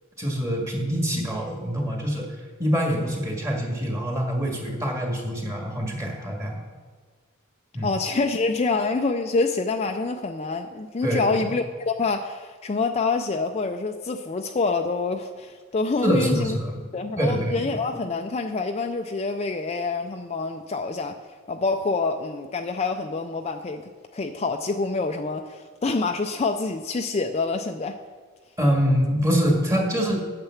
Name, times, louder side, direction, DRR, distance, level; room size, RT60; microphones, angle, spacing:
voice 1, 0.2-2.3 2.6-6.6 7.7-7.9 11.0-11.3 16.0-16.7 17.2-17.8 28.6-30.2, equal, 15° right, 0 dB, 1.8 m, -25 dB
voice 2, 7.8-16.6 16.9-21.2 21.5-23.8 24.1-28.0, left 3 dB, 30° left, 5 dB, 0.4 m, -26 dB
8.9 x 6.8 x 7.1 m, 1.5 s
head